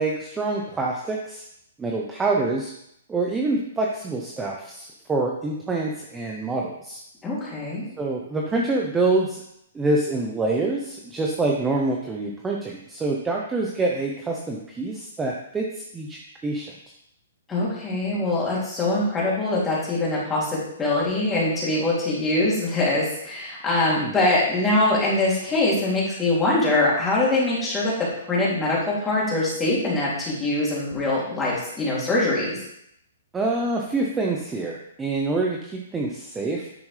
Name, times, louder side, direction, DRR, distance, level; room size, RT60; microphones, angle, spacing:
voice 1, 0.0-1.4 1.8-2.7 3.1-7.0 8.0-9.4 9.7-16.7 23.9-24.2 33.3-36.8, right 2 dB, 10° right, -1 dB, 0.9 m, -26 dB
voice 2, 7.2-7.9 17.5-32.6, left 2 dB, 10° left, -6 dB, 3.0 m, -23 dB
10.0 x 6.9 x 3.4 m, 0.75 s
hypercardioid pair, 160°, 0 cm